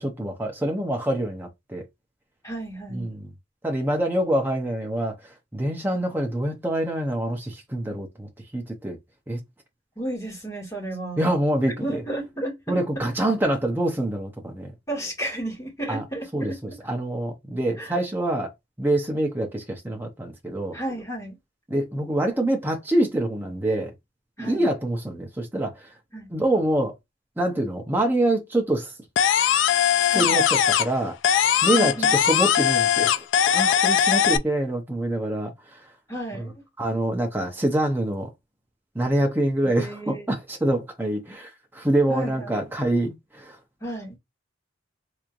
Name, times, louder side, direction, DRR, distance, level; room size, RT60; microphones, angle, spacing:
voice 1, 0.0-1.8 2.9-3.3 3.6-5.1 5.5-9.0 9.3-9.4 11.2-12.0 12.7-14.7 15.9-16.0 16.3-18.5 18.8-20.8 21.7-23.9 24.4-25.9 26.3-26.9 27.4-28.9 30.1-31.2 31.6-35.8 36.8-38.3 38.9-43.6, right 1 dB, 10° right, 0.7 m, -25 dB
voice 2, 2.4-3.1 10.0-11.2 11.8-13.1 14.9-16.6 17.8-17.9 20.7-21.4 24.4-24.7 26.1-26.3 30.1-30.4 31.7-32.4 36.1-36.6 39.6-40.3 42.1-42.7 43.8-44.2, right 1 dB, 15° left, 2.2 m, -33 dB
sound 1, 29.2-31.0 31.2-34.4, left 9 dB, 65° left, 0.3 m, -20 dB
3.5 x 3.1 x 2.5 m
head